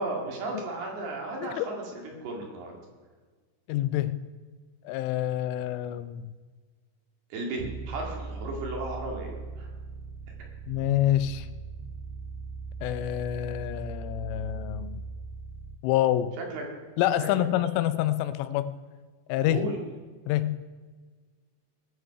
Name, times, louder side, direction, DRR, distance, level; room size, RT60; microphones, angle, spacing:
voice 1, 0.0-2.7 7.3-9.7 16.4-16.6 17.2-17.5 19.5-19.8, right 2 dB, 60° right, 0 dB, 3.7 m, -35 dB
voice 2, 3.7-4.2 4.8-6.3 10.7-11.5 12.8-15.0 15.8-16.4 17.0-18.8 19.3-19.7 20.3-20.6, left 12 dB, 85° left, 13 dB, 3.1 m, -27 dB
sound 1, 7.6-15.8, right 4 dB, 80° right, 2.6 m, -39 dB
20.0 x 7.4 x 5.7 m, 1.4 s
omnidirectional pair, 5.8 m